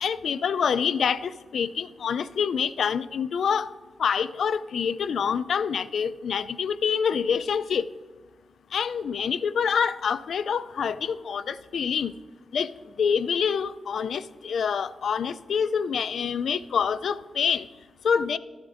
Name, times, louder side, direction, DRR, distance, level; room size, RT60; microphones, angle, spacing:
voice 1, 0.0-3.7 4.0-7.8 8.7-12.1 12.5-12.7 13.0-17.6 18.0-18.4, left 7 dB, 75° left, 14 dB, 0.3 m, -26 dB
13.5 x 11.0 x 2.5 m, 1.3 s
wide cardioid pair, 105°, 0 cm